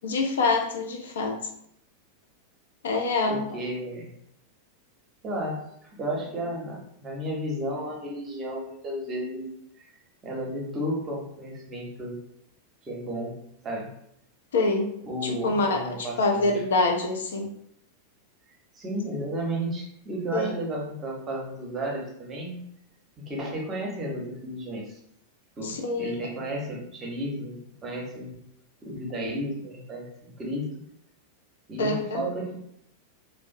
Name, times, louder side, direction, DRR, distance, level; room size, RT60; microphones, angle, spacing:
voice 1, 0.0-1.4 2.8-3.5 14.5-14.9 15.2-17.5 20.3-20.5 25.6-26.2 31.8-32.2, left 3 dB, 65° left, 1 dB, 0.4 m, -25 dB
voice 2, 3.3-4.1 5.2-9.5 9.8-9.9 10.2-12.2 12.9-13.4 13.6-13.9 15.0-16.6 18.8-22.6 23.3-25.0 25.6-28.4 28.8-30.7 31.7-32.6, right 1 dB, 25° right, -1 dB, 0.7 m, -33 dB
2.5 x 2.0 x 2.4 m, 0.73 s
figure-of-eight pair, 90°, 0 cm